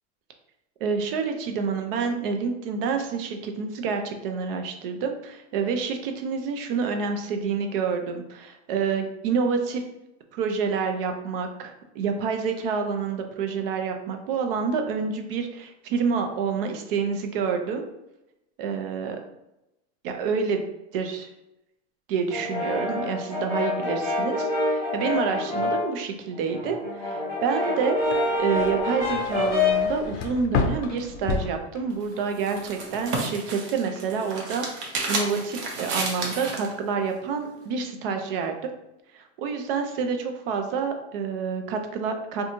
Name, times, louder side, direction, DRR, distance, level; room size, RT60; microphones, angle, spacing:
voice 1, 0.8-9.8 10.3-17.8 18.6-19.2 20.0-20.6 20.9-21.3 22.1-28.0 28.4-38.7 39.1-42.4, right 5 dB, 55° right, 5 dB, 0.4 m, -28 dB
Brass instrument, 22.3-25.9 26.3-29.9, left 2 dB, 10° right, 0.9 m, -26 dB
Door Shut Mid, 28.0-32.3 32.6-33.1, left 5 dB, 70° left, 0.5 m, -31 dB
sound 1, 31.9-36.7, right 3 dB, 75° right, 0.8 m, -32 dB
2.6 x 2.2 x 2.8 m, 0.90 s
supercardioid pair, 175°, 33 cm